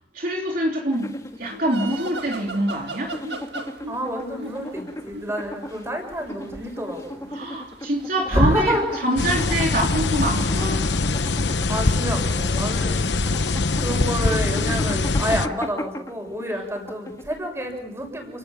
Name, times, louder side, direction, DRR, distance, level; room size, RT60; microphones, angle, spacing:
voice 1, 0.1-3.2 7.3-8.7 9.0-10.8, right 1 dB, 50° right, 0 dB, 3.5 m, -25 dB
sound 1, 0.9-17.7, equal, 20° left, 1.9 m, -36 dB
sound 2, 1.3-10.2, right 2 dB, 75° right, 1.9 m, -40 dB
voice 2, 3.9-7.3 8.3-8.8 11.7-13.1 13.7-18.4, equal, 15° right, 3 dB, 7.1 m, -28 dB
sound 3, 9.2-15.5, left 3 dB, 80° left, 1.0 m, -23 dB
30.0 x 19.0 x 7.2 m, 0.88 s
head